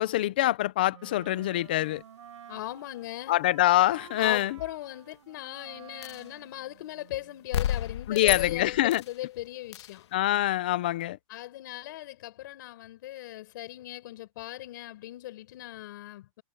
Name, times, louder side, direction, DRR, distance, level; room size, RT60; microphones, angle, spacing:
voice 1, 0.0-2.0 3.3-4.6 8.1-9.0 10.1-11.2, left 15 dB, 15° left, 0.3 m, -25 dB
Wind instrument woodwind instrument, 0.9-7.5, right 9 dB, 65° right, 7.2 m, -52 dB
voice 2, 2.5-3.4 4.2-10.1 11.3-16.4, left 15 dB, 35° left, 5.8 m, -39 dB
sound 1, 6.0-6.3 7.5-9.2 9.7-10.0, left 10 dB, 55° left, 1.4 m, -31 dB
hypercardioid pair, 175°, 17 cm